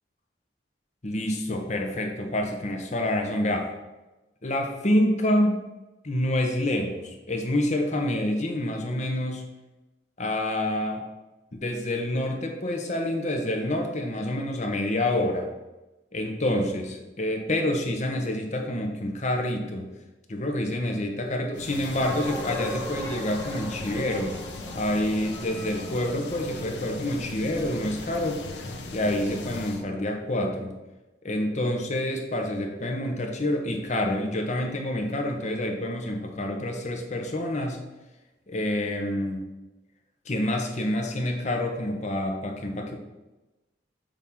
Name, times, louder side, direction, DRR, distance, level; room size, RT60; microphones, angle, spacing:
voice 1, 1.0-3.7 4.4-5.6 6.0-9.4 10.2-11.0 11.5-15.5 16.1-19.9 20.3-24.3 24.7-28.4 28.9-30.7 31.2-37.8 38.5-39.5 40.2-43.0, left 1 dB, 40° left, 3 dB, 1.1 m, -27 dB
sound 1, 21.5-29.8, left 2 dB, 80° left, 0.9 m, -39 dB
sound 2, 22.0-26.8, right 1 dB, 20° left, 1.0 m, -39 dB
7.2 x 3.6 x 5.5 m, 1.0 s
head